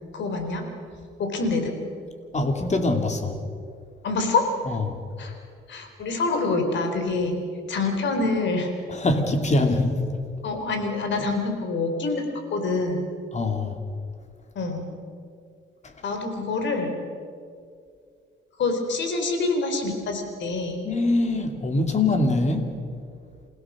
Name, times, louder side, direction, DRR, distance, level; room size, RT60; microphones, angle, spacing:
voice 1, 0.1-0.7 1.2-1.7 4.0-4.4 5.2-5.3 5.7-7.4 7.7-8.7 10.4-13.0 14.6-14.9 16.0-17.0 18.6-20.8, left 3 dB, 65° left, 5 dB, 3.8 m, -26 dB
voice 2, 2.3-3.4 4.7-5.0 8.9-10.0 13.3-13.8 15.8-15.9 20.8-22.7, left 2 dB, 35° left, 5 dB, 2.7 m, -23 dB
28.0 x 16.5 x 6.1 m, 2.3 s
cardioid pair, 90°, 20 cm